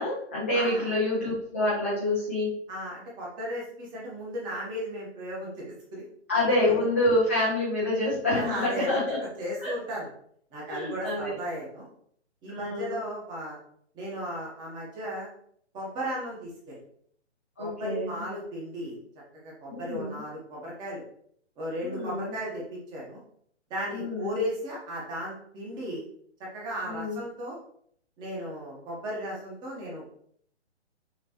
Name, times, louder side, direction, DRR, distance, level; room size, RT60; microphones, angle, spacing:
voice 1, 0.0-2.6 6.3-9.2 9.6-9.7 10.7-11.4 12.5-13.0 17.6-18.1 19.7-20.2 21.8-22.3 23.9-24.4 26.8-27.2, left 1 dB, 10° left, -10 dB, 0.4 m, -27 dB
voice 2, 0.5-0.9 2.7-6.1 6.6-6.8 8.3-9.0 9.4-10.1 10.5-11.9 12.4-13.6 13.9-15.3 15.7-16.8 17.6-19.0 19.3-21.0 21.6-23.2 23.7-26.0 26.4-27.6 28.2-30.0, equal, 10° right, -4 dB, 1.0 m, -35 dB
6.0 x 3.0 x 2.9 m, 0.65 s
hypercardioid pair, 155°, 35 cm